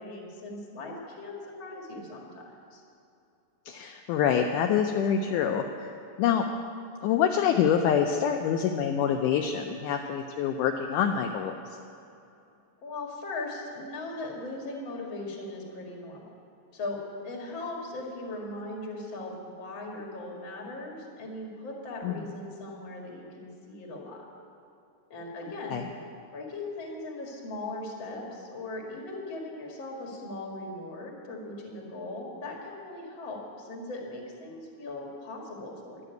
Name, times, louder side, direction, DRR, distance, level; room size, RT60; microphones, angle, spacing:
voice 1, 0.0-2.8 12.8-16.3 16.7-17.0 17.2-24.2 25.1-25.8 26.3-36.0, left 2 dB, 40° left, -1 dB, 2.3 m, -39 dB
voice 2, 3.7-5.9 6.2-6.5 7.0-11.6 22.0-22.3 25.7-25.8, left 8 dB, 80° left, 4 dB, 2.0 m, -26 dB
11.0 x 7.7 x 9.1 m, 2.7 s
omnidirectional pair, 4.0 m